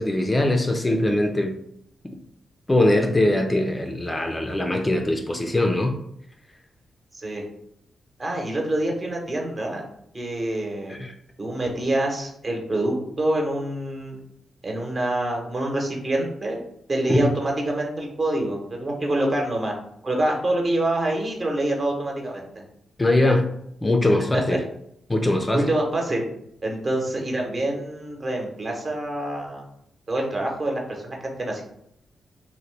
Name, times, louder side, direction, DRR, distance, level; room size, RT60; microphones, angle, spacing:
voice 1, 0.0-1.6 2.7-6.0 10.9-11.1 17.1-17.3 23.0-23.5 23.8-24.6 25.1-25.7, left 1 dB, 25° left, 4 dB, 0.4 m, -21 dB
voice 2, 8.2-9.8 10.1-10.9 11.4-14.2 14.6-16.6 16.9-19.7 20.0-22.6 24.5-24.6 25.5-26.2 26.6-29.6 30.1-31.6, right 1 dB, 40° right, 0 dB, 0.9 m, -26 dB
2.8 x 2.2 x 3.2 m, 0.72 s
supercardioid pair, 45°, 0 cm